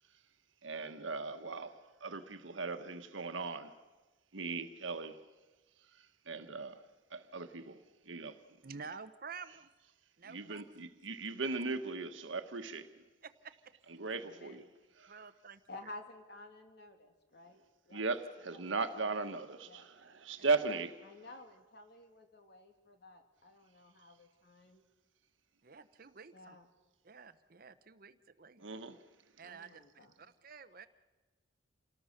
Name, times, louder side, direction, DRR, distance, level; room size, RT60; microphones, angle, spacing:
voice 1, 0.6-3.7 4.3-5.2 6.3-6.8 7.1-7.8 8.1-8.4 10.3-13.0 14.0-14.6 15.0-15.1 17.9-21.0 28.6-29.0, right 3 dB, 85° right, 1.4 m, -38 dB
voice 2, 8.6-9.7 10.2-10.6 11.5-11.6 13.2-13.5 15.1-15.6 20.4-20.5 25.6-26.6 27.0-28.6 29.4-30.9, right 5 dB, 50° right, 0.9 m, -50 dB
voice 3, 14.2-14.7 15.7-18.0 18.5-18.6 19.0-19.2 19.6-19.8 21.0-24.8 26.3-26.7 29.4-30.3 30.7-30.8, left 2 dB, 55° left, 2.5 m, -53 dB
28.0 x 18.5 x 6.6 m
head